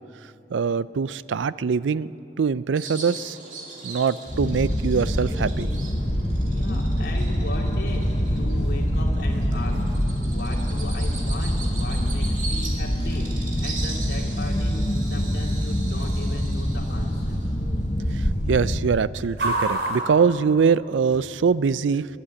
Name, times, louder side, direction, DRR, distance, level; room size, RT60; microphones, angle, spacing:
voice 1, 0.5-2.1 2.4-3.4 3.8-5.7 18.5-22.1, right 5 dB, 90° right, 17 dB, 0.4 m, -23 dB
Bird vocalization bird call bird song, 2.8-18.8, right 3 dB, 40° right, 2.5 m, -40 dB
sound 1, 4.3-18.9, equal, 30° left, 1.1 m, -25 dB
sound 2, 6.4-21.2, right 2 dB, 60° right, 4.4 m, -38 dB
voice 2, 6.5-17.4, left 2 dB, 90° left, -6 dB, 2.4 m, -38 dB
26.0 x 11.5 x 8.8 m, 3.0 s
head